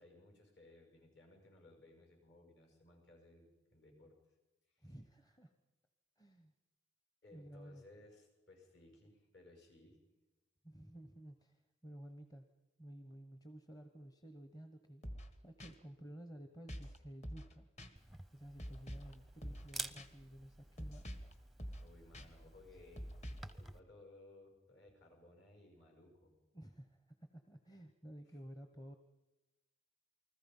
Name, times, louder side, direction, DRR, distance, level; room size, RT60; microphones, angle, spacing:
voice 1, 0.0-4.2 4.7-4.9 7.2-10.0 21.8-23.1 23.4-26.3 28.3-28.4, left 2 dB, 60° left, 2 dB, 6.8 m, -61 dB
voice 2, 4.8-5.5 6.2-6.5 7.3-7.8 10.6-12.5 12.8-15.0 15.4-17.7 18.3-21.2 26.5-28.9, right 1 dB, 20° left, 6 dB, 1.0 m, -54 dB
sound 1, 15.0-15.3 15.6-15.7 16.7-17.0 17.2-17.5 17.8-17.9 18.6-19.1 19.4-19.7 20.0-20.1 20.8-21.3 21.6-21.9 22.1-22.3 23.0-23.5, equal, 35° left, 1.6 m, -46 dB
Camera, 18.0-23.8, right 2 dB, ahead, 0.7 m, -51 dB
29.0 x 20.5 x 5.5 m, 1.1 s
head